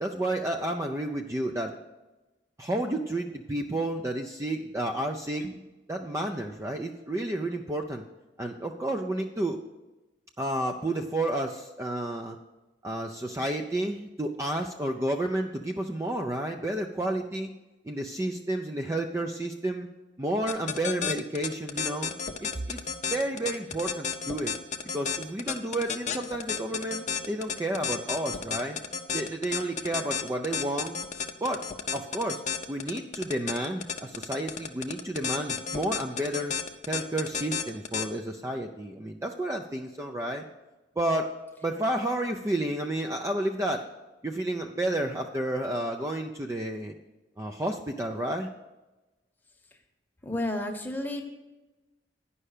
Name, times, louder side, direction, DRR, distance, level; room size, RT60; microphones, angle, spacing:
voice 1, 0.0-1.8 2.6-5.4 5.9-8.0 8.4-9.6 10.4-12.4 12.8-17.5 17.8-19.9 20.2-22.1 22.4-22.8 23.1-24.5 24.9-28.8 29.1-31.0 31.4-31.6 31.9-32.4 32.7-36.5 36.9-40.5 41.0-41.3 41.6-43.9 44.2-46.9 47.4-48.5, right 1 dB, 15° right, 3 dB, 0.4 m, -31 dB
sound 1, 20.5-38.1, left 6 dB, 40° left, 0.6 m, -31 dB
voice 2, 50.2-51.2, left 1 dB, 10° left, 3 dB, 1.0 m, -32 dB
9.9 x 5.6 x 6.5 m, 1.1 s
head